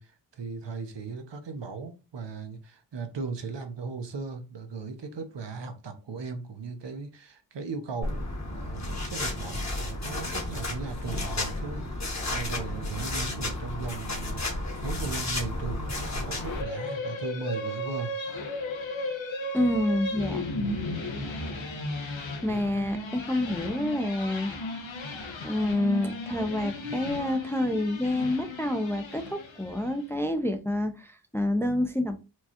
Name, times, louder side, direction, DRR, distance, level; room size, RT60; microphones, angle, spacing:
voice 1, 0.0-14.5 14.8-18.1, right 4 dB, 70° right, 0.8 m, -37 dB
sound 1, 8.0-16.6, left 2 dB, 35° left, 1.1 m, -32 dB
sound 2, 16.4-30.0, left 1 dB, 85° left, 0.9 m, -35 dB
voice 2, 19.5-20.5 22.4-24.5 25.4-32.2, left 1 dB, 5° left, 0.4 m, -28 dB
4.5 x 2.3 x 2.8 m
wide cardioid pair, 65°, 45 cm